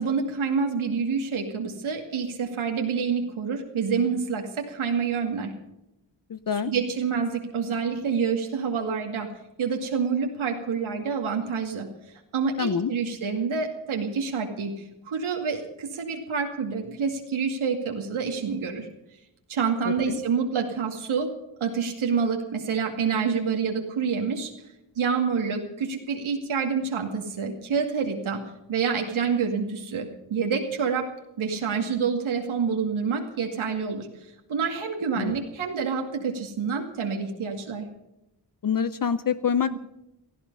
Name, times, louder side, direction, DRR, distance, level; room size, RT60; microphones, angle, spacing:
voice 1, 0.0-5.5 6.5-9.3 9.6-11.9 12.3-18.9 19.5-21.3 21.6-24.5 25.0-28.4 28.7-31.1 31.4-34.1 34.5-37.8 39.7-39.8, right 5 dB, 85° right, 2 dB, 2.3 m, -27 dB
voice 2, 6.3-6.7 12.6-12.9 20.1-20.2 35.2-35.3 38.6-39.8, left 7 dB, 45° left, 14 dB, 0.7 m, -26 dB
17.5 x 14.0 x 5.5 m, 0.88 s
cardioid pair, 80°, 47 cm